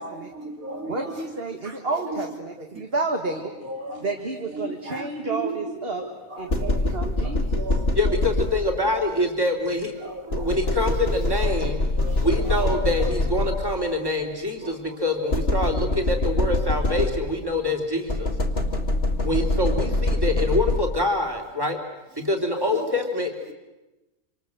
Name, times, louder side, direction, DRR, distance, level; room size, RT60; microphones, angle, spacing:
voice 1, 0.0-1.4 1.6-2.3 2.7-2.8 3.2-4.1 4.5-6.9 7.2-8.2 8.9-9.0 10.0-10.9 11.4-11.7 12.0-12.7 13.0-13.1 14.5-15.3 16.8-17.1 22.5-23.5, right 2 dB, 70° right, 3 dB, 3.0 m, -36 dB
voice 2, 0.9-3.5 4.0-6.0 6.4-7.6, right 3 dB, 40° right, 2 dB, 2.2 m, -30 dB
sound 1, 6.5-9.0 10.3-13.9 15.3-17.5 18.1-21.2, left 2 dB, 40° left, 2.4 m, -24 dB
voice 3, 7.9-9.9 10.4-11.8 12.2-18.3 19.2-21.8 22.2-23.3, left 1 dB, 15° right, 3 dB, 3.2 m, -25 dB
27.5 x 26.0 x 8.0 m, 1.1 s
omnidirectional pair, 1.5 m